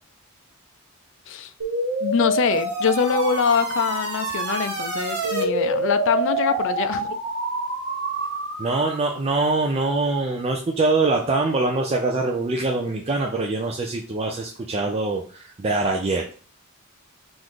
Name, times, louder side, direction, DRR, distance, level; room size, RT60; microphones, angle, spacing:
sound 1, 1.6-9.1, right 1 dB, 85° right, 1.4 m, -26 dB
voice 1, 2.0-7.2, left 5 dB, 60° left, 10 dB, 0.4 m, -24 dB
voice 2, 8.6-16.3, right 3 dB, 30° right, 2 dB, 0.4 m, -23 dB
3.8 x 2.5 x 4.7 m, 0.41 s
head